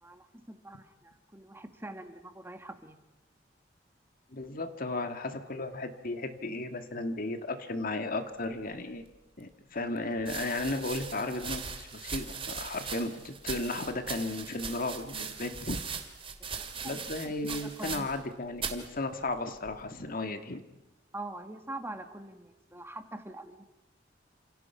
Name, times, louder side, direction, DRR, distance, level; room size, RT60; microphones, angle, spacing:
voice 1, 0.0-3.0 16.6-18.1 21.1-23.7, right 2 dB, 15° right, 7 dB, 1.8 m, -44 dB
voice 2, 4.3-9.0 9.4-15.8 16.8-20.6, left 2 dB, 50° left, 8 dB, 2.0 m, -35 dB
sound 1, 9.1-9.2 10.2-18.3 18.6-18.9 19.6-20.0, right 5 dB, 30° right, 2.5 m, -39 dB
28.5 x 27.5 x 5.8 m, 0.94 s
head